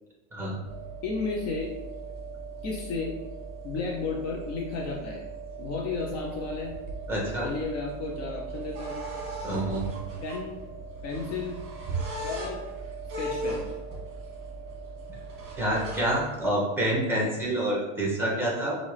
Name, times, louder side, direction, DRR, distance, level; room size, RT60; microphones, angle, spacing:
sound 1, 0.6-16.5, right 3 dB, 35° right, 1.5 m, -38 dB
voice 1, 1.0-1.8 2.6-3.2 3.6-5.2 5.6-6.8 7.4-9.1 10.2-10.6 11.0-11.6 12.2-12.6 13.2-13.7, left 4 dB, 40° left, -2 dB, 0.8 m, -33 dB
voice 2, 7.1-7.5 9.4-9.8 15.6-18.8, right 1 dB, 5° right, -3 dB, 1.4 m, -27 dB
5.4 x 2.5 x 3.3 m, 1.1 s
hypercardioid pair, 105°, 39 cm